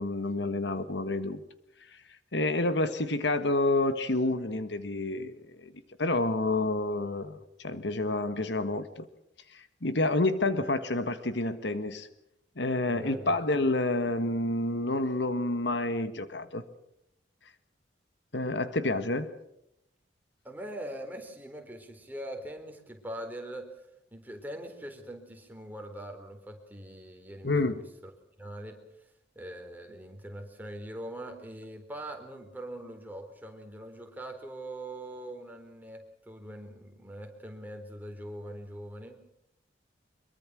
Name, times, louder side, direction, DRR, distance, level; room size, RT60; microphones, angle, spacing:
voice 1, 0.0-1.4 1.9-2.0 2.3-5.7 6.0-9.0 9.5-12.1 12.6-16.6 18.3-19.3 27.4-27.8, left 2 dB, 70° left, 11 dB, 1.6 m, -29 dB
voice 2, 12.9-13.3 20.4-28.1 28.4-28.8 29.4-39.2, right 1 dB, 10° right, 3 dB, 4.0 m, -42 dB
24.0 x 23.0 x 6.3 m, 0.80 s
head